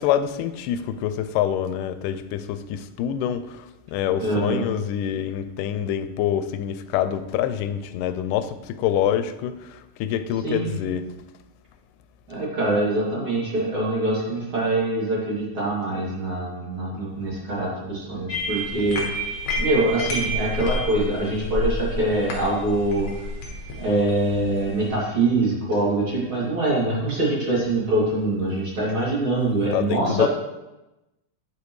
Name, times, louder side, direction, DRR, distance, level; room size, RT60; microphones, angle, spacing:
voice 1, 0.0-11.1 29.7-30.3, left 10 dB, 90° left, 11 dB, 2.2 m, -26 dB
voice 2, 4.2-4.6 10.4-10.7 12.3-19.0 19.6-23.1 23.8-30.3, right 2 dB, 40° right, -7 dB, 3.5 m, -24 dB
sound 1, 18.3-24.9, equal, 55° left, 2.0 m, -29 dB
9.4 x 8.3 x 3.2 m, 0.99 s
omnidirectional pair, 3.7 m